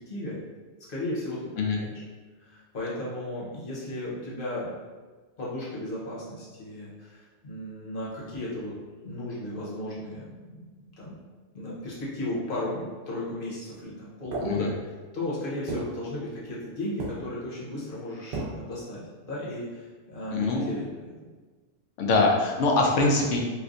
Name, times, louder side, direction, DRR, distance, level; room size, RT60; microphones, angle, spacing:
voice 1, 0.1-0.4 0.9-2.0 2.4-4.7 5.4-8.8 9.0-10.7 11.0-11.2 11.5-21.1, left 1 dB, 50° left, -7 dB, 1.1 m, -35 dB
sound 1, 14.3-15.1 15.7-16.7 17.0-17.6 18.3-18.8, right 3 dB, 60° right, 0.7 m, -36 dB
voice 2, 20.3-20.7 22.0-23.4, left 3 dB, 75° left, 0 dB, 1.0 m, -23 dB
4.5 x 2.2 x 2.5 m, 1.4 s
omnidirectional pair, 1.3 m